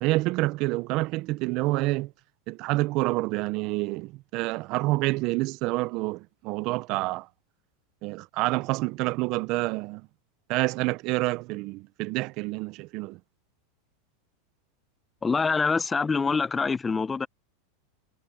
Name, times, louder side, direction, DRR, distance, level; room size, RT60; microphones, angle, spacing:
voice 1, 0.0-2.1 2.5-7.3 8.0-10.0 10.5-13.2, right 21 dB, 50° right, 0.5 m, -28 dB
voice 2, 15.2-17.3, left 4 dB, 15° left, 0.6 m, -25 dB
supercardioid pair, 135°, 0 cm